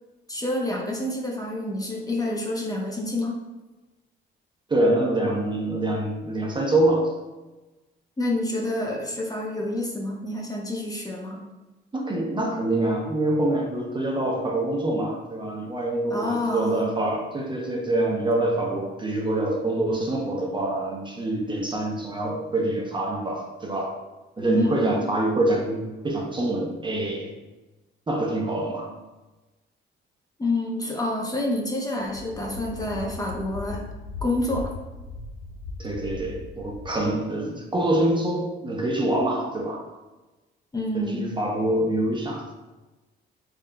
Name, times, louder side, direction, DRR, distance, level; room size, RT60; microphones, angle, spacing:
voice 1, 0.3-3.4 8.2-11.4 16.1-16.9 24.5-24.8 30.4-33.8 34.2-34.7 40.7-41.3, left 1 dB, 20° left, -1 dB, 0.7 m, -28 dB
voice 2, 4.7-7.2 11.9-24.0 24.4-27.3 28.1-28.9 35.8-40.0 40.9-42.5, right 1 dB, 25° right, 0 dB, 0.7 m, -25 dB
sound 1, 31.4-31.5 32.0-37.1, left 3 dB, 90° left, 0.4 m, -38 dB
3.8 x 3.7 x 2.2 m, 1.1 s
cardioid pair, 90°, 20 cm